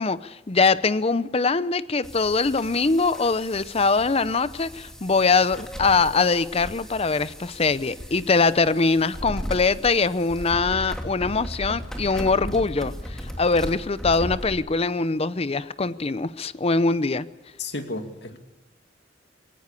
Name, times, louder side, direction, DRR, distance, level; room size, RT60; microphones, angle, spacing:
voice 1, 0.0-17.3, left 4 dB, 35° left, 16 dB, 0.7 m, -22 dB
sound 1, 2.0-14.6, equal, 5° left, 2.8 m, -37 dB
voice 2, 17.6-18.4, left 2 dB, 65° left, 5 dB, 2.5 m, -32 dB
21.0 x 18.0 x 8.3 m, 1.0 s
head